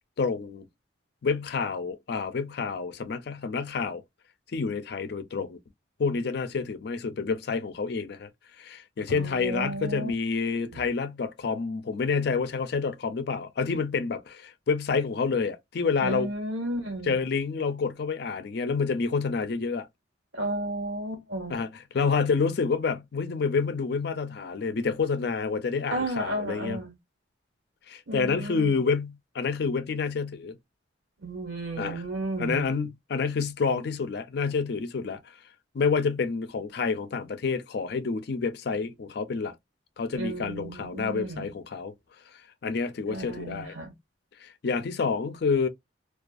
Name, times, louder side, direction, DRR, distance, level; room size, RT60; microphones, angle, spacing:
voice 1, 0.2-0.7 1.2-4.0 4.5-5.6 6.0-8.3 8.6-16.3 17.0-19.9 21.5-26.8 27.9-30.6 31.8-32.0 32.4-35.3 35.7-39.5 40.0-41.9 42.6-43.7 44.4-45.7, left 5 dB, 55° left, 0.4 m, -28 dB
voice 2, 9.1-10.1 10.7-10.8 16.0-17.2 20.3-21.6 25.9-26.9 28.1-28.7 31.2-32.7 40.1-41.5 43.1-43.9, right 1 dB, 80° right, 1.3 m, -33 dB
2.3 x 2.3 x 2.4 m
head